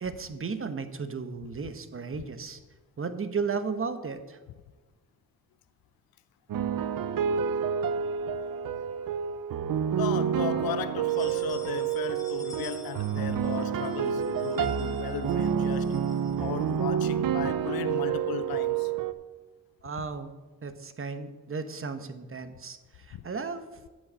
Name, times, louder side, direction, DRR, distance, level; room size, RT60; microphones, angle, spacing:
voice 1, 0.0-2.6 3.0-4.4 19.8-20.3 20.6-23.6, right 5 dB, 40° right, 1.0 m, -34 dB
sound 1, 6.5-19.1, right 8 dB, 70° right, 0.6 m, -29 dB
sound 2, 8.4-9.3 9.7-9.8 10.2-10.3 10.9-17.1, left 3 dB, 10° left, 1.8 m, -52 dB
voice 2, 10.0-16.0 16.4-18.9 23.1-23.2, left 11 dB, 85° left, 0.5 m, -36 dB
7.7 x 6.4 x 7.5 m
cardioid pair, 70°, 35 cm